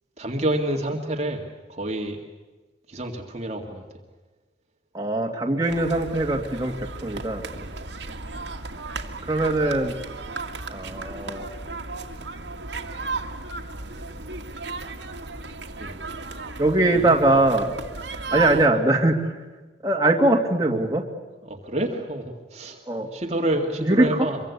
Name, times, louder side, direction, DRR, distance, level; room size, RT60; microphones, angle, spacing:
voice 1, 0.2-1.4 1.7-2.2 2.9-3.8 7.5-7.7 15.8-16.0 16.9-17.4 18.3-18.5 21.4-22.8 23.1-24.4, right 1 dB, 35° right, 2 dB, 2.1 m, -28 dB
voice 2, 4.9-7.4 9.3-9.9 10.7-11.5 16.6-17.8 18.3-19.2 19.8-21.0 22.9-23.1 23.8-24.1, right 2 dB, 20° right, 1 dB, 2.4 m, -21 dB
sound 1, 5.7-18.7, right 3 dB, 70° right, 2.2 m, -35 dB
25.0 x 24.0 x 8.5 m, 1.3 s
head